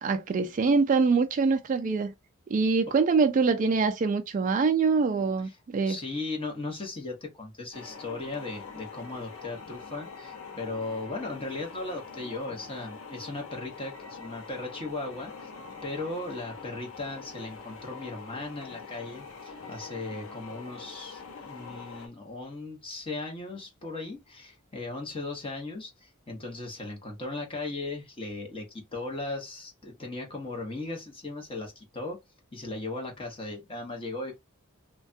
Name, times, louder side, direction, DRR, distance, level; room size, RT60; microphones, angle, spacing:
voice 1, 0.0-2.1 2.5-6.0, right 4 dB, 40° right, 0.3 m, -24 dB
voice 2, 5.9-15.5 15.8-32.2 32.5-34.4, left 2 dB, 25° left, 1.0 m, -37 dB
sound 1, 7.7-22.1, left 5 dB, 80° left, 0.7 m, -44 dB
3.2 x 2.2 x 2.6 m
head